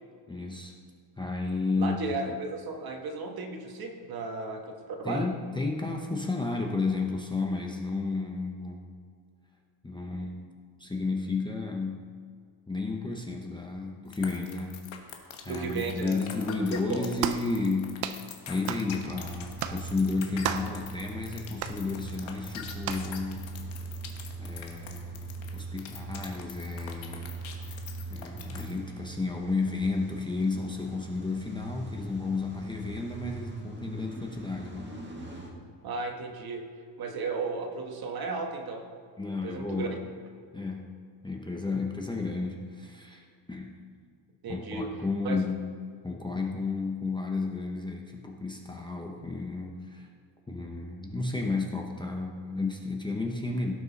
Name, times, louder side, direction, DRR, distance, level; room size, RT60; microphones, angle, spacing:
voice 1, 0.3-0.7 1.2-2.0 5.0-9.0 9.8-10.5 10.8-12.0 12.7-14.8 15.4-23.5 24.4-27.8 28.1-34.9 39.2-40.0 40.5-41.0 41.2-43.8 44.5-45.6 46.0-50.1 50.5-53.7, left 3 dB, 10° left, 0 dB, 0.7 m, -32 dB
voice 2, 1.8-5.3 15.5-16.2 16.9-17.1 35.8-36.6 37.0-38.8 39.3-40.0 44.4-44.8 45.2-45.4, right 3 dB, 50° right, 3 dB, 1.5 m, -34 dB
sound 1, 14.1-28.8, left 8 dB, 75° left, 1.5 m, -43 dB
sound 2, 17.2-17.5 18.0-18.2 18.7-18.9 19.6-19.8 20.4-20.8 21.6-21.8 22.8-23.1, right 10 dB, 85° right, 0.8 m, -32 dB
Car / Engine starting / Idling, 19.0-35.5, right 3 dB, 25° right, 1.7 m, -41 dB
17.0 x 6.7 x 4.1 m, 2.1 s
cardioid pair, 150°, 46 cm